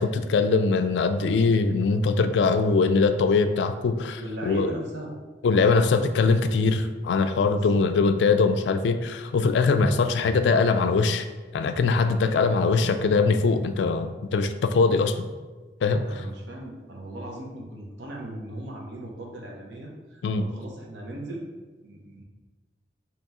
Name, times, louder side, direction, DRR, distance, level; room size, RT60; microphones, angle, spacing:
voice 1, 0.0-4.7 5.4-11.3 11.5-15.3 15.8-16.2 20.2-20.5, left 4 dB, 85° left, 9 dB, 0.3 m, -22 dB
voice 2, 4.2-5.1 7.6-7.9 15.9-21.4 21.8-22.2, right 1 dB, 80° right, 0 dB, 0.8 m, -38 dB
3.5 x 2.9 x 4.1 m, 1.3 s
head